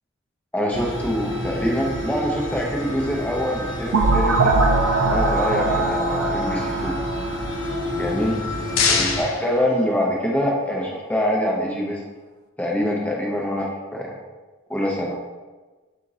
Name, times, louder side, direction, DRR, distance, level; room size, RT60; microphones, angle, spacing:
voice 1, 0.5-4.6 5.0-7.0 8.0-8.3 8.9-12.0 12.6-14.2 14.7-15.1, equal, 5° left, -3 dB, 0.6 m, -25 dB
sound 1, 0.7-9.2, equal, 60° left, 0.9 m, -29 dB
sound 2, 3.9-8.6, right 2 dB, 85° right, 0.4 m, -22 dB
sound 3, 8.2-10.4, left 5 dB, 85° left, 0.5 m, -26 dB
4.4 x 2.4 x 3.9 m, 1.2 s
head